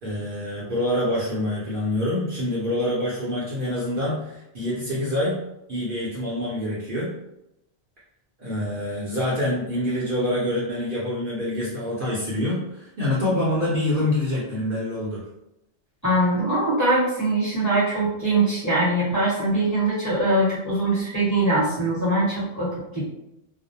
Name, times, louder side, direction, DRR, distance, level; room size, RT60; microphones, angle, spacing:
voice 1, 0.0-5.4 5.7-7.1 8.4-15.2, left 1 dB, 55° right, -6 dB, 0.7 m, -26 dB
voice 2, 16.0-22.7 22.9-23.0, right 2 dB, 15° left, -9 dB, 1.1 m, -22 dB
2.4 x 2.0 x 2.7 m, 0.86 s
omnidirectional pair, 1.2 m